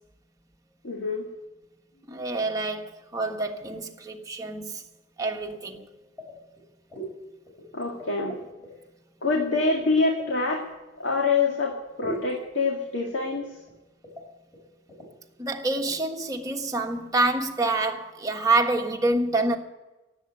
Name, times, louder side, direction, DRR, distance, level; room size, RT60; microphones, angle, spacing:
voice 1, 0.8-1.3 7.7-8.4 9.2-10.7 11.0-13.6, left 3 dB, 85° left, 2.1 m, -25 dB
voice 2, 2.1-4.8 5.2-5.9 15.4-19.6, right 2 dB, 20° right, 1.4 m, -27 dB
sound 1, 6.2-6.6 6.9-7.1 7.5-8.7 9.3-10.4 12.0-12.3 13.3-13.7 14.0-14.2 14.5-14.6 14.9-15.1 15.8-16.0, right 1 dB, 10° left, 4.7 m, -40 dB
16.5 x 8.0 x 9.1 m
head